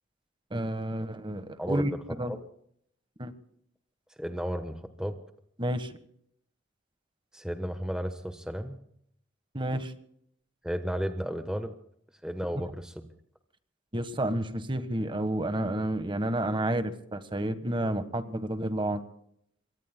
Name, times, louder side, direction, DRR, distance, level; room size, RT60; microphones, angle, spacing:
voice 1, 0.5-1.9 2.2-2.3 3.2-3.3 5.6-6.0 9.5-9.9 13.9-19.0, right 1 dB, 25° right, 10 dB, 1.3 m, -30 dB
voice 2, 4.2-5.2 7.3-8.8 10.6-11.7 12.2-12.9, equal, 5° right, 7 dB, 1.1 m, -33 dB
27.0 x 23.5 x 2.2 m, 0.69 s
head